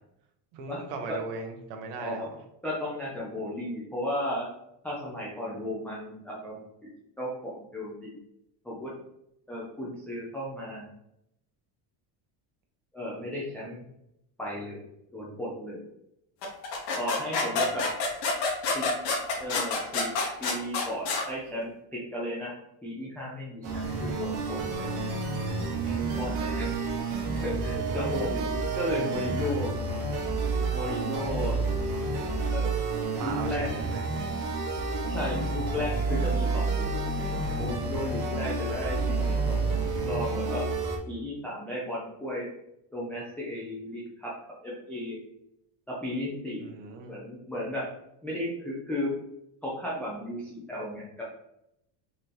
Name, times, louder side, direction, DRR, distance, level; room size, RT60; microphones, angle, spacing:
voice 1, 0.5-2.3 17.5-17.8 26.3-26.7 30.1-30.2 33.2-34.0 46.6-47.2, right 4 dB, 60° right, 4 dB, 0.9 m, -39 dB
voice 2, 2.6-4.5 4.8-6.9 7.2-8.2 8.6-8.9 9.5-10.9 12.9-13.9 14.4-14.8 15.1-15.8 17.0-17.9 18.7-18.9 19.4-20.1 20.4-22.5 22.8-24.9 25.9-26.8 27.4-29.7 30.7-31.6 32.5-32.7 33.2-33.8 35.1-36.9 37.5-39.7 40.0-40.7 41.1-42.5 42.9-44.3 44.6-45.2 45.9-46.7 47.1-47.9 48.2-49.1 49.6-51.2, left 1 dB, 5° left, -6 dB, 0.4 m, -34 dB
sound 1, 16.4-21.3, left 3 dB, 55° left, 1.0 m, -28 dB
sound 2, 23.6-41.0, right 3 dB, 80° right, 1.2 m, -29 dB
4.1 x 2.8 x 3.2 m, 0.81 s
cardioid pair, 160°, 48 cm